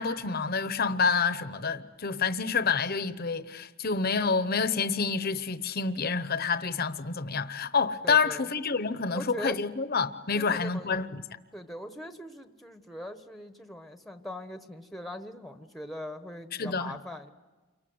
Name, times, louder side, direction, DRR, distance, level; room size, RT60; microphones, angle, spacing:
voice 1, 0.0-11.2 16.6-17.0, left 5 dB, 45° left, 0.9 m, -28 dB
voice 2, 8.0-8.5 9.1-9.6 10.3-10.9 11.5-17.3, equal, ahead, 1.1 m, -41 dB
29.0 x 24.0 x 7.9 m
head